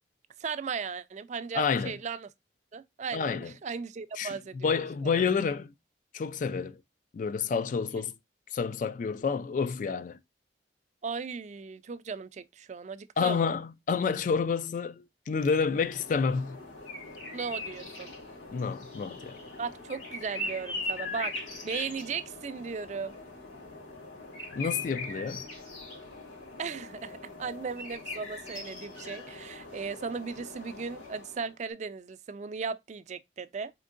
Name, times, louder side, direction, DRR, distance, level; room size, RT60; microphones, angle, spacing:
voice 1, 0.4-2.3 2.7-4.7 5.0-5.2 11.0-13.4 17.3-18.1 19.6-21.3 21.6-23.2 26.6-33.7, right 5 dB, 40° right, 0.4 m, -37 dB
voice 2, 1.5-1.9 3.1-3.5 4.2-5.7 6.1-6.8 7.1-8.1 8.5-10.2 13.2-16.6 18.5-19.4 24.5-25.4, left 5 dB, 45° left, 0.3 m, -29 dB
sound 1, 15.6-31.5, left 2 dB, 85° left, 2.9 m, -41 dB
4.4 x 3.6 x 2.4 m
head